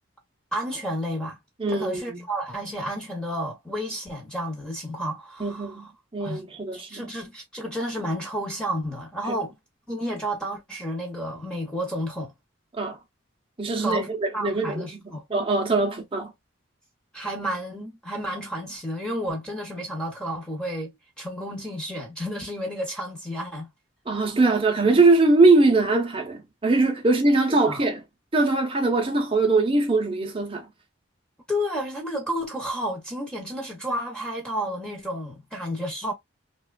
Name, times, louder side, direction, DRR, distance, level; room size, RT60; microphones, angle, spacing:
voice 1, 0.5-1.4 1.7-5.8 6.2-6.4 6.7-9.6 9.9-12.3 13.8-14.1 14.3-15.2 17.1-23.7 27.7-27.8 31.5-36.1, equal, 5° left, 0.8 m, -31 dB
voice 2, 1.6-2.2 5.4-7.1 12.7-13.0 13.6-15.0 15.3-16.3 24.1-28.0 28.3-30.7, right 3 dB, 25° right, 0.6 m, -22 dB
2.9 x 2.3 x 2.3 m
head